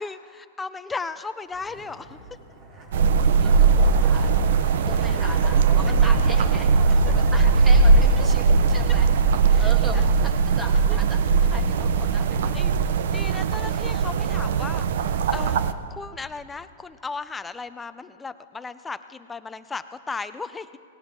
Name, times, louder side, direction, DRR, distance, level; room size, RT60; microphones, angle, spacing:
voice 1, 0.0-2.2 4.9-5.2 6.0-6.1 6.6-6.7 7.1-7.2 8.2-8.3 9.5-10.0 10.9-11.0 12.5-12.7 13.1-15.6 15.9-20.8, left 4 dB, 10° left, 12 dB, 0.5 m, -36 dB
Zipper (clothing), 1.5-9.1 9.4-9.5, right 2 dB, 35° right, 3.9 m, -41 dB
sound 1, 2.9-15.7, right 4 dB, 70° right, 0.7 m, -19 dB
voice 2, 3.2-4.5 4.8-6.7 7.1-9.1 9.6-11.2 11.5-12.5, right 1 dB, 10° right, 4 dB, 1.6 m, -37 dB
18.5 x 17.5 x 3.8 m, 2.3 s
hypercardioid pair, 150°, 0 cm